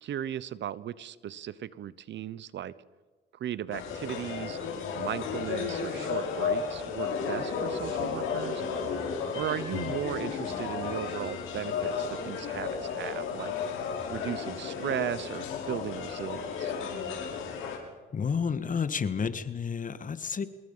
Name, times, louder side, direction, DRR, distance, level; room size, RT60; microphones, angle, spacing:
voice 1, 0.0-2.7 3.3-4.6 5.0-8.6 9.3-13.5 14.1-16.7, right 10 dB, 65° right, 18 dB, 1.0 m, -36 dB
sound 1, 3.7-17.8, left 6 dB, 85° left, 5.7 m, -33 dB
voice 2, 18.1-20.5, left 6 dB, 40° left, 12 dB, 1.7 m, -31 dB
26.5 x 21.5 x 5.7 m, 1.4 s
cardioid pair, 90°, 20 cm